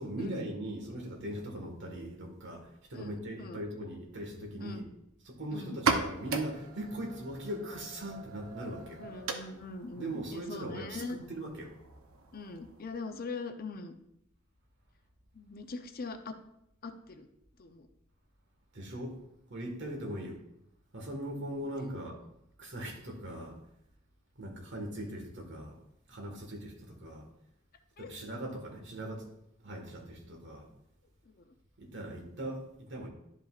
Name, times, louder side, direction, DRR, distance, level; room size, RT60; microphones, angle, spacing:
voice 1, 0.0-4.8 5.2-9.0 10.0-11.7 18.7-19.2 19.5-20.4 20.9-22.2 22.6-23.6 24.4-25.8 26.1-27.3 28.0-29.3 29.6-30.7 31.8-33.1, right 1 dB, 60° right, 1 dB, 1.6 m, -40 dB
voice 2, 2.9-3.6 4.6-4.8 5.5-5.8 9.0-11.2 12.3-13.9 15.3-16.4 16.8-17.3 17.6-17.9 28.0-28.1 31.4-31.5, left 3 dB, 45° left, 7 dB, 0.6 m, -42 dB
sound 1, 5.7-13.1, right 4 dB, 85° right, 0.7 m, -38 dB
11.5 x 5.2 x 2.4 m, 0.78 s
head